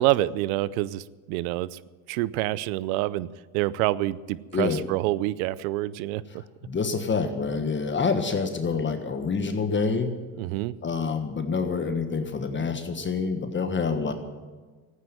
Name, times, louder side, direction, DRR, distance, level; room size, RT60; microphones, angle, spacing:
voice 1, 0.0-1.8 2.1-3.3 3.5-6.2 10.4-10.7, right 16 dB, 80° right, 19 dB, 0.7 m, -27 dB
voice 2, 6.3-10.2 10.8-14.1, left 4 dB, 25° left, 7 dB, 1.4 m, -27 dB
14.5 x 9.5 x 9.2 m, 1.4 s
supercardioid pair, 90°, 41 cm